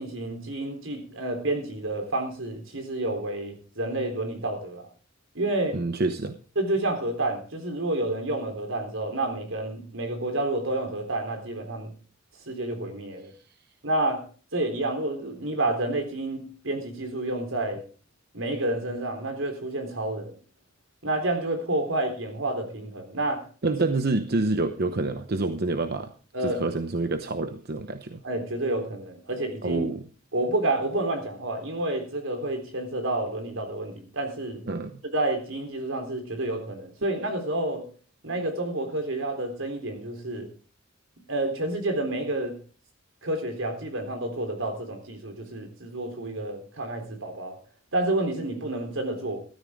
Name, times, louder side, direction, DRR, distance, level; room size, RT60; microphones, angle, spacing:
voice 1, 0.0-4.8 5.3-5.8 6.6-11.9 12.5-13.3 13.8-14.2 14.5-17.8 18.3-20.3 21.0-23.4 26.3-26.6 28.2-29.9 30.3-34.6 35.1-37.8 38.2-40.5 41.3-42.6 43.2-47.6 47.9-49.4, right 2 dB, 90° right, 5 dB, 3.7 m, -29 dB
voice 2, 5.7-6.4 23.6-26.1 26.4-28.2 29.6-30.0 34.7-35.0, right 3 dB, 55° right, 8 dB, 0.9 m, -27 dB
14.5 x 13.0 x 3.7 m, 0.39 s
head